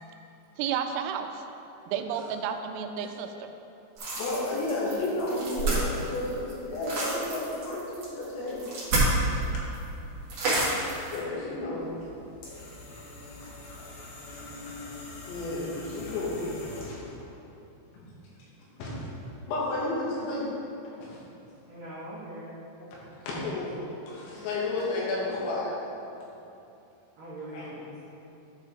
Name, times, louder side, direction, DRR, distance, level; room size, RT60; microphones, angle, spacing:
voice 1, 0.6-1.4 1.9-3.5, right 7 dB, 90° right, 6 dB, 3.2 m, -32 dB
sound 1, 4.0-9.5 9.7-9.8 10.3-11.2, right 2 dB, 50° right, 1.9 m, -29 dB
voice 2, 4.2-7.8 8.1-8.6 9.5-9.6 11.1-11.9 15.3-17.2 17.9-18.0 18.8-18.9 19.5-20.5 21.0-21.2 22.8-22.9 23.2-23.8 24.1-25.7 27.5-27.7, left 2 dB, 90° left, -6 dB, 4.2 m, -32 dB
sound 2, 11.8-17.1, left 2 dB, 70° left, 3.2 m, -43 dB
voice 3, 21.7-22.5 27.2-28.0, right 1 dB, 70° right, -11 dB, 2.1 m, -41 dB
12.5 x 4.5 x 3.7 m, 2.9 s
omnidirectional pair, 5.8 m